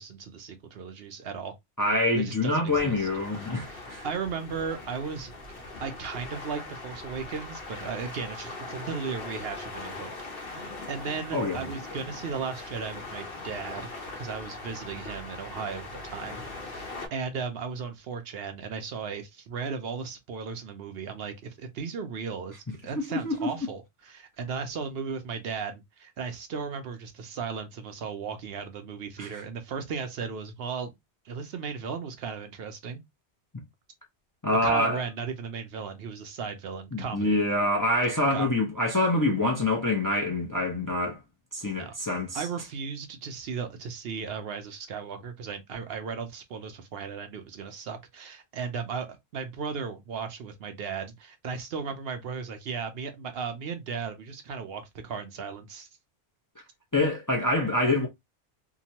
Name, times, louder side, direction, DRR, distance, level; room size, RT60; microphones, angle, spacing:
voice 1, 0.0-1.5 2.2-3.1 3.7-5.3 5.6-10.1 10.7-13.9 14.2-30.9 31.2-33.0 34.6-37.4 38.3-38.5 41.8-41.9 42.3-49.1 49.3-55.9, right 5 dB, 65° right, 0.7 m, -36 dB
voice 2, 1.8-4.0 11.3-11.6 23.0-23.5 29.2-29.3 34.4-35.0 36.9-41.2 41.5-42.5 56.9-58.1, left 1 dB, 25° left, 0.5 m, -26 dB
sound 1, 2.7-17.1, left 2 dB, 55° left, 1.0 m, -41 dB
2.8 x 2.2 x 2.8 m
omnidirectional pair, 1.2 m